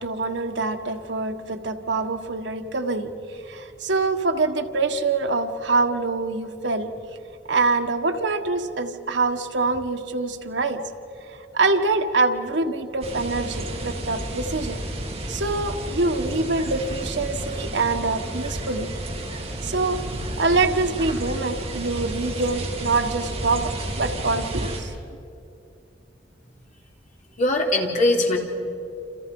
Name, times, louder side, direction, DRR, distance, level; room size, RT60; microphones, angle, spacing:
voice 1, 0.0-6.9 7.5-10.8 11.3-14.8 15.3-18.9 19.6-24.9, right 3 dB, 85° right, 5 dB, 1.6 m, -25 dB
sound 1, 13.0-24.8, right 1 dB, 35° right, 3.8 m, -32 dB
voice 2, 27.4-28.4, left 1 dB, 45° left, 1 dB, 3.2 m, -20 dB
28.5 x 28.5 x 5.5 m, 2.6 s
head